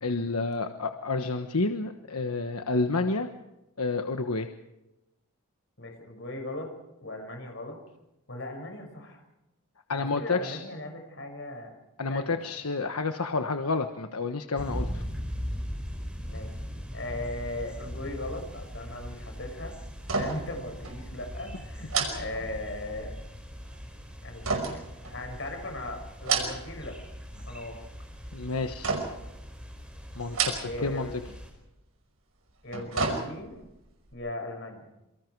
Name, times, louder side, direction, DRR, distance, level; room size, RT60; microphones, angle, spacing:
voice 1, 0.0-3.3 3.8-4.5 9.9-10.6 12.0-15.0 28.3-28.9 30.1-31.1, left 3 dB, 85° left, 6 dB, 1.3 m, -29 dB
voice 2, 5.8-6.7 7.0-7.8 8.3-9.2 10.0-11.7 12.1-12.4 16.2-19.8 20.1-23.1 24.2-24.8 25.1-27.0 27.5-27.8 30.6-31.1 32.6-33.6 34.1-34.9, left 1 dB, 55° left, 4 dB, 6.2 m, -38 dB
sound 1, 14.6-31.5, equal, 5° right, 5.0 m, -40 dB
sound 2, 20.0-20.6 20.8-21.0 21.9-23.0 24.4-25.6 26.1-26.9 27.2-27.7 28.8-29.3 30.2-31.0 31.3-31.4 32.5-33.7 34.1-34.2, right 5 dB, 70° right, 5.7 m, -31 dB
28.0 x 24.0 x 4.7 m, 0.95 s
head